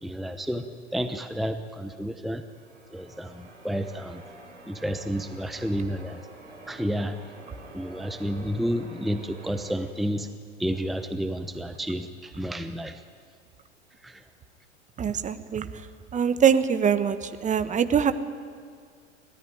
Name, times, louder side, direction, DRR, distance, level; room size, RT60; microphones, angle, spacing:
voice 1, 0.0-2.4 2.9-4.2 4.7-6.2 6.7-7.2 7.7-10.3 10.6-13.0 14.0-14.2, equal, ahead, 9 dB, 1.0 m, -31 dB
Church bell, 2.5-9.8, right 1 dB, 85° right, 6.3 m, -47 dB
voice 2, 15.0-15.7 16.1-18.1, right 7 dB, 20° right, 11 dB, 1.2 m, -23 dB
29.5 x 14.0 x 9.8 m, 2.1 s
figure-of-eight pair, 90°, 36 cm